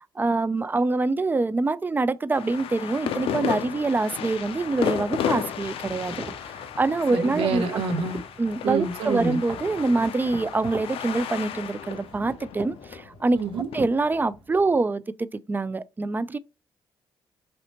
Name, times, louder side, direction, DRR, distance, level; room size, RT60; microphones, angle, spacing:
voice 1, 0.2-6.1 6.5-7.8 8.4-13.4 13.7-16.4, right 3 dB, 20° right, 0.3 m, -25 dB
sound 1, 2.3-13.8, left 9 dB, 75° left, 0.4 m, -33 dB
sound 2, 4.3-14.7, right 2 dB, 60° right, 1.1 m, -42 dB
voice 2, 7.1-8.2 8.6-9.4 13.3-13.7, right 5 dB, 80° right, 0.5 m, -27 dB
3.1 x 2.8 x 2.8 m
supercardioid pair, 55°, 10 cm